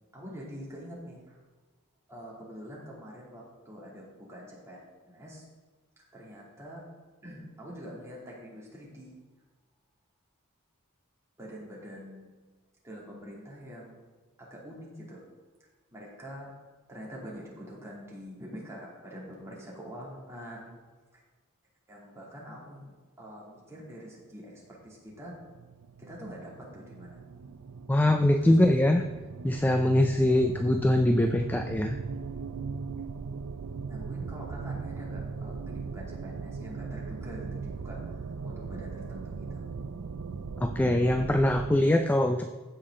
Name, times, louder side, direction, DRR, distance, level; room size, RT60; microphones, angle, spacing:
voice 1, 0.1-1.4 2.1-5.4 6.1-6.8 7.2-9.2 11.4-12.3 12.8-14.0 14.4-15.2 15.9-16.5 16.9-20.8 21.1-21.2 21.9-22.9 23.2-25.4 26.0-27.2 28.4-28.8 33.9-38.0 38.4-39.6, equal, 15° right, -5 dB, 2.7 m, -45 dB
sound 1, 25.1-41.8, right 5 dB, 85° right, 0.5 m, -39 dB
voice 2, 27.9-29.1 29.4-32.0 40.6-42.5, left 1 dB, 10° left, 6 dB, 0.3 m, -23 dB
15.0 x 5.9 x 3.8 m, 1.3 s
head